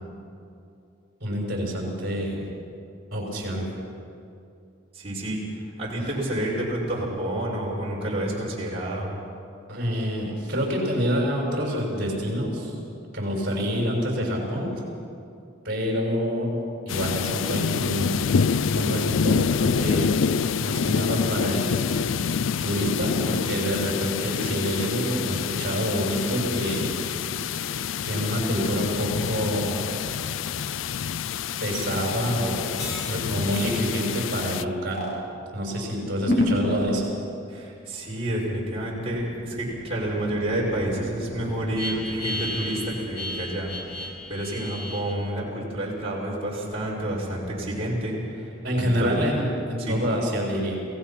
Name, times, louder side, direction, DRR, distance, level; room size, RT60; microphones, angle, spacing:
voice 1, 1.2-2.4 3.1-3.7 6.0-6.1 9.7-12.8 13.1-14.7 15.6-16.6 16.9-18.2 18.6-20.1 20.6-22.0 22.6-27.0 28.0-29.8 31.6-35.1 35.5-37.1 48.6-50.7, equal, 45° right, -1 dB, 6.2 m, -27 dB
voice 2, 5.0-5.4 5.8-9.2 37.5-48.1 48.8-49.2 49.8-50.0, right 1 dB, 30° right, -5 dB, 5.5 m, -29 dB
sound 1, 16.9-34.6, left 6 dB, 70° left, 0.4 m, -27 dB
sound 2, 32.8-33.2 33.5-33.8 34.9-35.2 36.2-37.1 37.6-45.1, left 1 dB, 50° left, 3.5 m, -31 dB
27.5 x 17.0 x 5.9 m, 2.5 s
head